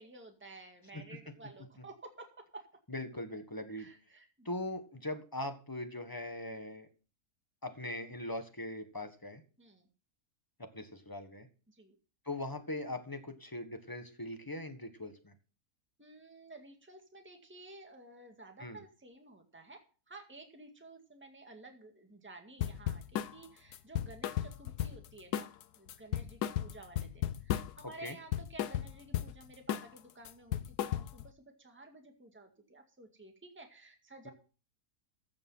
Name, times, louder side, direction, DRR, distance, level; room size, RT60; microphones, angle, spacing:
voice 1, 0.0-2.7 3.3-3.4 3.7-4.5 9.6-9.9 11.7-12.0 16.0-25.5 25.8-34.3, right 2 dB, 5° right, 4 dB, 2.0 m, -53 dB
voice 2, 2.9-3.9 4.4-6.9 7.6-9.4 10.6-11.5 12.2-15.3 18.6-18.8 28.0-28.1 34.2-34.3, left 1 dB, 15° left, 7 dB, 1.4 m, -40 dB
sound 1, 22.6-23.3 23.7-25.1 25.3-25.6 25.9-27.8 28.1-29.3 29.7-30.0 30.2-31.3, left 11 dB, 80° left, 1.3 m, -35 dB
15.0 x 7.0 x 5.6 m, 0.37 s
omnidirectional pair, 1.7 m